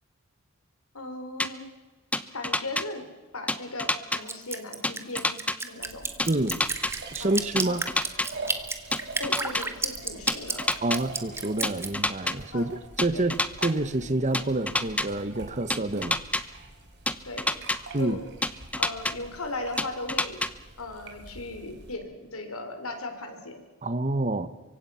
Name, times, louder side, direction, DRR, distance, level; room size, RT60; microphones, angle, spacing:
voice 1, 0.9-1.7 2.3-3.0 3.3-5.4 5.6-6.2 7.2-7.8 9.2-10.7 12.5-12.7 13.1-13.3 17.2-17.7 18.0-18.3 18.8-20.4 20.8-23.6, left 2 dB, 85° left, 4.0 m, -37 dB
sound 1, 1.4-1.5 2.1-2.8 3.5-4.2 4.8-5.6 6.2-6.9 7.6-8.3 8.9-9.6 10.3-11.0 11.6-12.3 13.0-13.7 14.3-15.1 15.7-16.4 17.1-17.8 18.4-19.1 19.8-20.5, left 2 dB, 5° left, 0.9 m, -27 dB
Drip, 4.3-11.9, right 3 dB, 10° right, 1.5 m, -31 dB
sound 2, 5.8-21.9, right 3 dB, 55° right, 4.0 m, -45 dB
voice 2, 6.3-6.6 7.1-7.8 10.8-12.7 13.0-13.4 13.6-16.2 17.9-18.2 23.8-24.5, right 2 dB, 35° right, 1.1 m, -27 dB
25.0 x 24.0 x 5.7 m
head